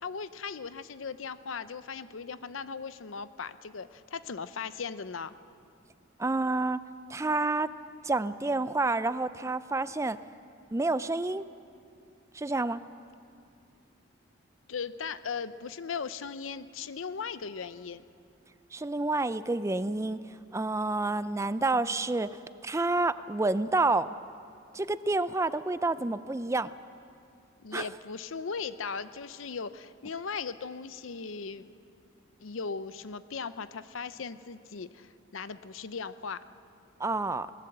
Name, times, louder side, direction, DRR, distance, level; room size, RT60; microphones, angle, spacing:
voice 1, 0.0-5.3 14.7-18.0 27.6-31.7 32.4-36.4, left 5 dB, 85° left, 14 dB, 0.7 m, -38 dB
voice 2, 6.2-6.8 7.1-7.7 8.0-10.2 10.7-11.4 12.3-12.8 18.7-20.2 20.5-24.1 24.7-26.7 27.7-27.8 37.0-37.5, right 2 dB, 15° right, 14 dB, 0.4 m, -29 dB
20.0 x 18.5 x 8.0 m, 2.4 s
head